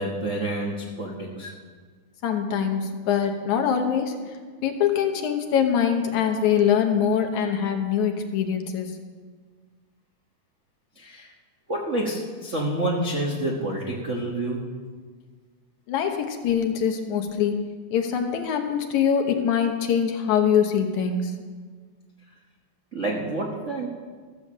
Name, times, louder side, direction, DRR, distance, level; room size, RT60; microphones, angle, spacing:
voice 1, 0.0-1.5 10.9-11.3 11.7-14.7 22.9-23.9, right 1 dB, 55° right, -2 dB, 0.7 m, -28 dB
voice 2, 2.2-4.2 4.6-9.0 15.9-17.6 17.9-21.3, left 8 dB, 75° left, 5 dB, 2.4 m, -23 dB
14.5 x 7.1 x 7.4 m, 1.6 s
omnidirectional pair, 3.5 m